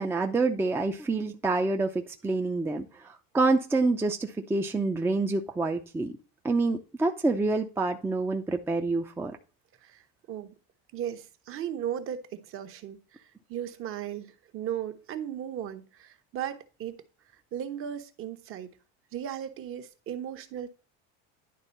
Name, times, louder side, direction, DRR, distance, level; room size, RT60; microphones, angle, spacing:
voice 1, 0.0-6.1 6.4-9.4, right 3 dB, 5° right, 0.6 m, -27 dB
voice 2, 9.8-10.5 10.9-17.0 17.5-18.7 19.1-20.7, right 10 dB, 40° right, 1.2 m, -36 dB
11.0 x 3.7 x 5.3 m
supercardioid pair, 145°, 32 cm